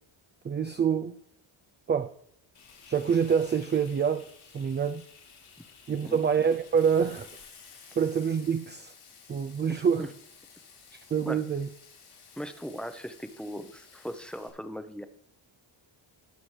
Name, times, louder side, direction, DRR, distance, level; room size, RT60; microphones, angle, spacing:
voice 1, 0.4-1.2 1.9-2.1 2.9-4.3 4.5-5.0 5.9-7.3 8.0-8.9 9.3-10.1 11.1-11.7, right 7 dB, 25° right, 0.4 m, -26 dB
Frying (food), 2.5-14.5, left 6 dB, 75° left, 5.0 m, -53 dB
voice 2, 9.7-10.1 11.2-11.4 12.4-15.0, equal, ahead, 0.7 m, -39 dB
19.5 x 6.9 x 3.2 m
cardioid pair, 125°, 47 cm